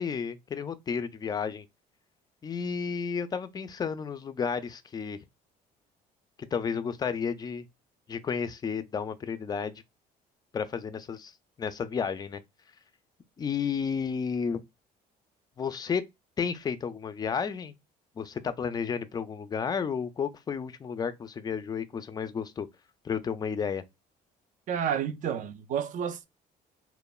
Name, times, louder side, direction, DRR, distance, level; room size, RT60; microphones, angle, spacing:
voice 1, 0.0-1.7 2.4-5.2 6.4-7.7 8.1-9.8 10.5-11.3 11.6-12.4 13.4-14.6 15.6-16.0 16.4-17.7 18.2-22.7 23.0-23.8, left 6 dB, 25° left, 0.3 m, -32 dB
voice 2, 24.7-26.3, right 8 dB, 50° right, 0.4 m, -30 dB
3.0 x 2.1 x 2.2 m
cardioid pair, 110°, 17 cm